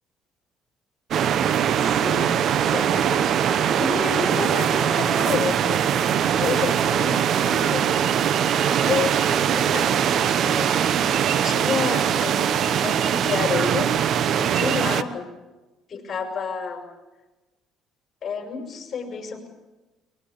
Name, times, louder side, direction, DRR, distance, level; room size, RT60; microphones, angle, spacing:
sound 1, 1.1-15.0, right 9 dB, 60° right, 1.0 m, -21 dB
voice 1, 1.8-5.8 6.4-8.4 8.9-10.7 11.4-13.9 14.3-15.3 15.9-16.8 18.2-19.5, left 5 dB, 40° left, 4 dB, 6.3 m, -30 dB
22.0 x 21.5 x 8.2 m, 1.1 s
cardioid pair, 100°, 0 cm